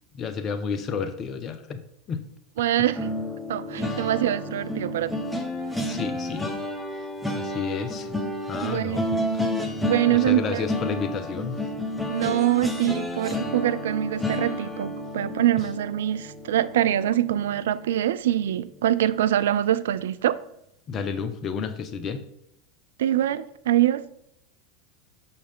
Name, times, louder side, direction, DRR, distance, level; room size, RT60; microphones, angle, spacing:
voice 1, 0.1-1.8 2.1-2.2 3.8-4.1 5.8-6.5 7.3-8.1 8.5-9.1 9.3-9.5 10.1-11.6 20.9-22.2, left 6 dB, 35° left, 0.8 m, -31 dB
voice 2, 2.6-3.1 3.5-5.1 8.6-9.5 9.8-10.7 12.1-20.4 23.0-24.0, right 12 dB, 70° right, 0.3 m, -24 dB
sound 1, 2.9-18.1 18.5-18.7 19.0-19.2, left 1 dB, 5° left, 1.0 m, -31 dB
6.4 x 5.6 x 3.5 m
hypercardioid pair, 85°, 0 cm